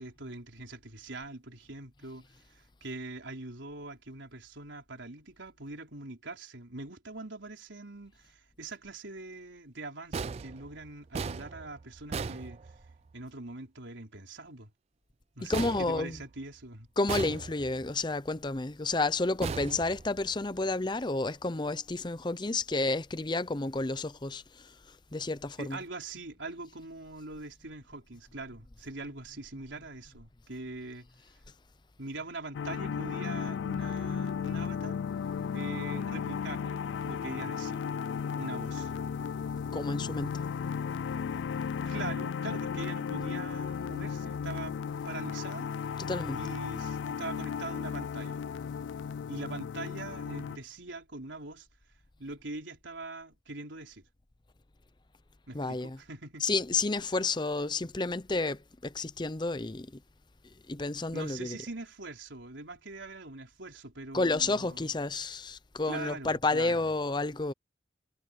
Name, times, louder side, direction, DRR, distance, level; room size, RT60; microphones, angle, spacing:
voice 1, 0.0-2.2 2.5-12.6 13.1-14.7 15.4-16.9 25.6-31.1 32.0-35.0 35.5-37.9 38.4-38.9 41.8-45.7 46.3-48.4 49.3-51.7 52.2-54.1 55.5-56.5 61.1-64.9 65.8-66.9, right 2 dB, 90° right, 4.2 m, -43 dB
sound 1, 10.1-13.2 15.5-16.6 17.1-17.9 19.4-20.5, right 5 dB, 35° right, 0.3 m, -38 dB
voice 2, 15.4-16.2 17.0-24.7 25.1-25.8 39.7-40.3 46.0-46.4 55.5-56.0 56.4-59.9 60.7-61.6 64.1-67.5, left 3 dB, 25° left, 0.6 m, -31 dB
sound 2, 32.5-50.6, left 6 dB, 85° left, 0.3 m, -35 dB
head